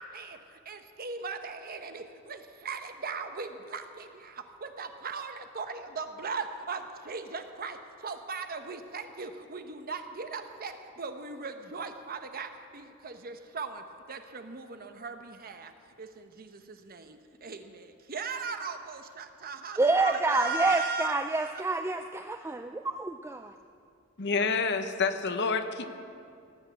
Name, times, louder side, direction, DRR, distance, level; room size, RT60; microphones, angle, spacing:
voice 1, 0.0-15.7 16.0-21.6, right 4 dB, 45° right, 7 dB, 0.9 m, -38 dB
voice 2, 19.8-23.5, right 3 dB, 10° right, 7 dB, 0.3 m, -28 dB
voice 3, 24.2-25.8, left 4 dB, 55° left, 8 dB, 0.9 m, -28 dB
18.5 x 8.1 x 8.1 m, 2.4 s
head